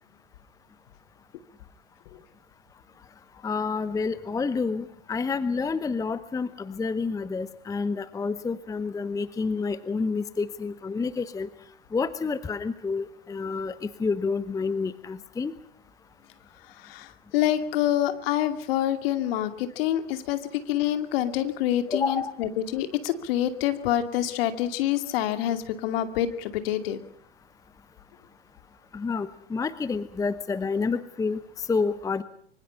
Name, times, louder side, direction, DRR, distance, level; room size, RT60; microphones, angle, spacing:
voice 1, 3.4-11.5 11.9-13.7 14.0-15.5 21.9-22.3 28.9-32.2, left 4 dB, 10° left, 14 dB, 0.9 m, -29 dB
voice 2, 16.8-27.0, left 12 dB, 55° left, 9 dB, 2.5 m, -27 dB
25.0 x 24.5 x 5.7 m, 0.62 s
hypercardioid pair, 100°, 36 cm